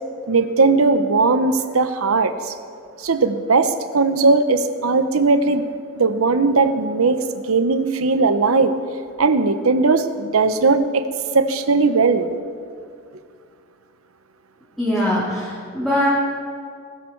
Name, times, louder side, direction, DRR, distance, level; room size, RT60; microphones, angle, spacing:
voice 1, 0.3-2.5 3.0-5.7 6.0-7.2 7.5-8.8 9.2-11.1 11.3-12.3, right 3 dB, 80° right, 10 dB, 0.9 m, -18 dB
voice 2, 14.8-16.1, equal, ahead, -9 dB, 3.0 m, -21 dB
20.5 x 12.5 x 4.6 m, 2.3 s
head